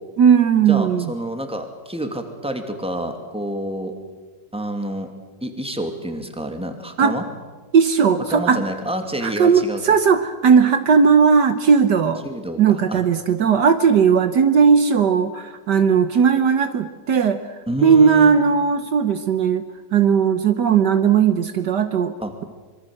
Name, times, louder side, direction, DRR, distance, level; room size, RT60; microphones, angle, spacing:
voice 1, 0.2-1.1 7.0-7.2 7.7-8.6 9.2-12.2 12.6-17.4 17.8-19.6 19.9-22.1, right 6 dB, 65° right, 10 dB, 1.6 m, -17 dB
voice 2, 0.7-3.9 4.5-5.1 5.4-7.2 8.3-9.8 12.2-13.0 17.7-18.4 22.2-22.3, right 1 dB, 5° right, 5 dB, 2.5 m, -28 dB
25.5 x 23.5 x 7.8 m, 1.4 s
omnidirectional pair, 2.0 m